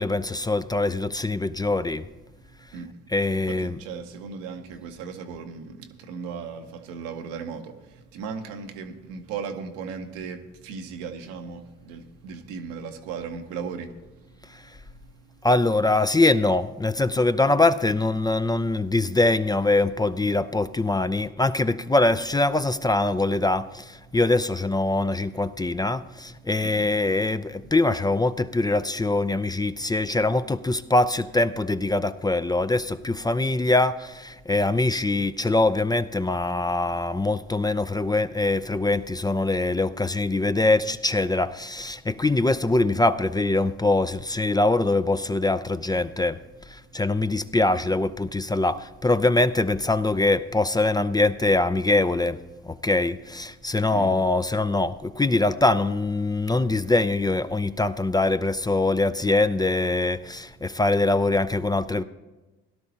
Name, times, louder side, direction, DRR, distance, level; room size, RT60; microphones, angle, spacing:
voice 1, 0.0-2.0 3.1-3.8 14.5-14.6 15.4-46.4 46.7-52.4 52.7-62.0, left 2 dB, 15° left, 0.4 m, -23 dB
voice 2, 3.5-5.7 6.1-7.7 8.1-13.9 26.6-26.9 53.9-54.2, right 6 dB, 85° right, 1.0 m, -36 dB
17.0 x 12.0 x 2.8 m
hypercardioid pair, 55°, 30 cm